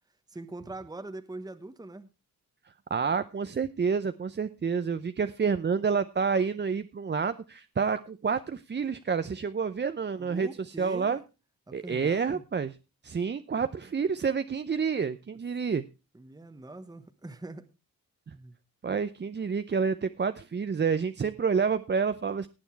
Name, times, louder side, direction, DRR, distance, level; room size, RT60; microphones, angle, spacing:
voice 1, 0.3-2.1 10.2-11.2 11.7-12.4 16.1-17.7 18.3-18.5, right 2 dB, 10° right, 9 dB, 1.1 m, -42 dB
voice 2, 2.9-10.5 10.8-11.2 11.7-12.7 13.0-15.8 18.8-22.5, right 5 dB, 30° right, 11 dB, 0.6 m, -28 dB
18.0 x 7.0 x 4.6 m, 0.30 s
cardioid pair, 85°, 34 cm